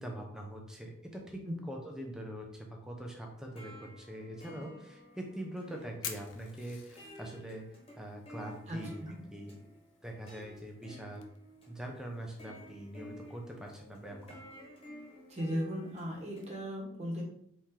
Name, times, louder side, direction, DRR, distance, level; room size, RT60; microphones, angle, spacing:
voice 1, 0.0-1.4 1.7-7.6 8.0-9.0 9.3-9.7 10.0-11.2 11.7-14.4, right 1 dB, 5° right, 1 dB, 0.6 m, -43 dB
sound 1, 3.3-16.5, equal, 30° left, 1.2 m, -53 dB
Fire, 5.0-16.5, left 8 dB, 80° left, 0.6 m, -53 dB
voice 2, 8.7-9.2 15.3-17.2, equal, 35° right, -2 dB, 1.3 m, -37 dB
4.3 x 3.0 x 3.7 m, 0.69 s
head